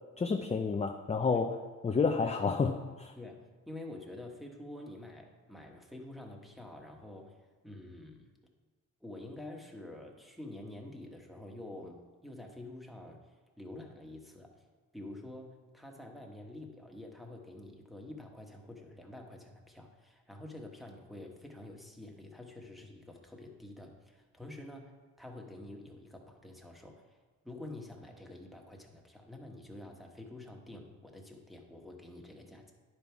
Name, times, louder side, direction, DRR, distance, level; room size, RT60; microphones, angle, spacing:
voice 1, 0.2-3.1, left 4 dB, 20° left, 5 dB, 0.5 m, -30 dB
voice 2, 3.1-7.4 7.6-8.3 9.0-14.6 14.9-27.2 27.4-32.7, left 1 dB, ahead, 1 dB, 1.3 m, -48 dB
9.9 x 5.5 x 4.6 m, 1.4 s
cardioid pair, 85°, 34 cm